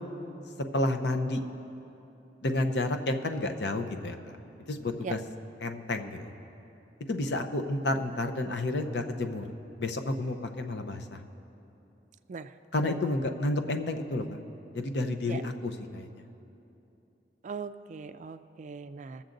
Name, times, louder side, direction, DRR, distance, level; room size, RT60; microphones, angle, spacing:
voice 1, 0.7-1.4 2.4-4.4 4.7-5.2 5.6-6.3 7.1-9.5 9.8-11.2 12.7-14.2 14.7-16.1, left 2 dB, 65° left, 6 dB, 0.7 m, -30 dB
voice 2, 17.4-19.2, right 5 dB, 45° right, 11 dB, 0.3 m, -39 dB
21.5 x 7.2 x 3.9 m, 2.9 s
head